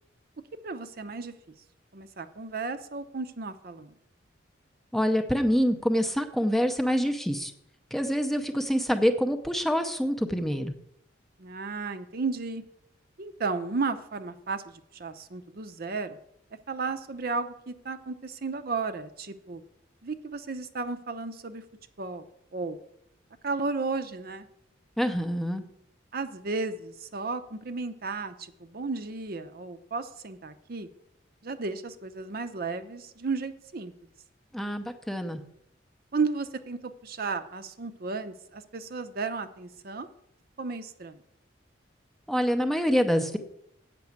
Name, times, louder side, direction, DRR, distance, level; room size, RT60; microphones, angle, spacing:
voice 1, 0.6-1.5 1.9-4.0 11.4-12.6 13.2-16.2 16.7-19.6 20.0-21.6 22.0-22.2 22.5-22.8 23.4-24.5 26.1-30.9 31.4-33.9 36.1-40.1 40.6-41.2, right 4 dB, 50° right, 10 dB, 0.6 m, -34 dB
voice 2, 4.9-7.5 7.9-10.7 25.0-25.6 34.5-35.4 42.3-43.4, equal, ahead, 6 dB, 0.6 m, -26 dB
8.4 x 6.0 x 8.0 m, 0.77 s
head